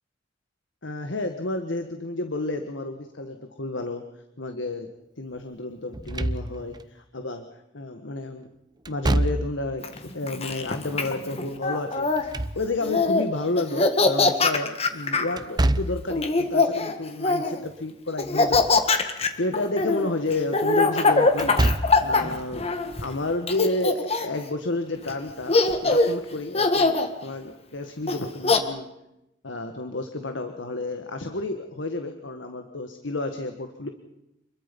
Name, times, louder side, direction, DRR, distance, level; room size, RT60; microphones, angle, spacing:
voice 1, 0.8-4.0 4.4-4.9 5.2-7.4 7.7-8.5 8.9-21.6 22.0-22.7 23.0-25.6 25.8-28.9 29.4-33.9, left 2 dB, 85° left, 6 dB, 1.6 m, -31 dB
Slam / Thump thud, 5.9-6.8 8.9-9.8 12.0-13.1 15.4-16.2 18.2-18.8 19.2-19.3 21.3-22.1, right 1 dB, 20° right, 0.8 m, -26 dB
Laughter, 9.8-12.2 12.8-13.2 13.6-15.3 16.1-17.6 18.2-23.1 23.5-24.4 25.1-25.2 25.5-26.1 26.5-27.1 28.1-28.6, left 3 dB, 35° left, 1.8 m, -22 dB
28.0 x 22.0 x 5.4 m, 0.87 s
head